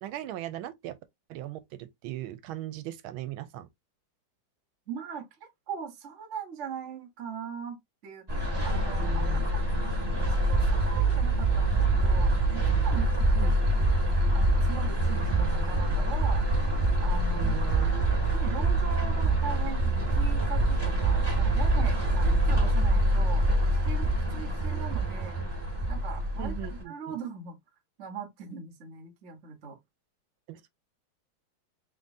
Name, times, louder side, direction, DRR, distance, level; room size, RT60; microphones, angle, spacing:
voice 1, 0.0-1.0 1.3-3.7 8.7-9.4 13.4-13.6 17.3-18.0 26.4-27.1 30.5-30.7, right 13 dB, 85° right, 1.4 m, -39 dB
voice 2, 4.9-9.7 10.1-13.9 14.3-16.4 17.0-17.6 18.1-23.4 23.8-25.4 25.9-27.6 28.0-29.8, right 6 dB, 45° right, 1.1 m, -40 dB
sound 1, 8.3-26.8, right 2 dB, 15° right, 1.2 m, -25 dB
3.9 x 3.6 x 2.6 m
omnidirectional pair, 2.3 m